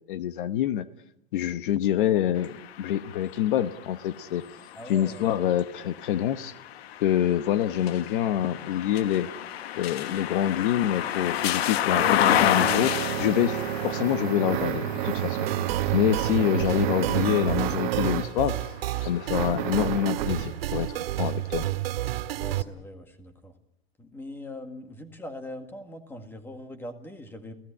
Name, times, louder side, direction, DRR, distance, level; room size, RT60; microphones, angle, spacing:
voice 1, 0.1-0.9 1.3-4.4 4.9-6.5 7.0-9.3 9.8-12.9 13.2-13.6 13.8-15.5 15.9-18.7 19.0-21.7, left 11 dB, 55° left, 12 dB, 1.1 m, -26 dB
sound 1, 2.4-18.3 18.9-20.1, left 11 dB, 80° left, 1.3 m, -31 dB
voice 2, 4.7-5.3 22.4-23.5 24.0-27.5, left 1 dB, 5° left, 7 dB, 1.8 m, -41 dB
sound 2, 11.2-18.4 19.3-20.4, right 13 dB, 50° right, 1.4 m, -30 dB
sound 3, 15.5-22.6, right 14 dB, 70° right, 2.2 m, -30 dB
29.0 x 17.0 x 9.7 m, 0.81 s
supercardioid pair, 170°, 30 cm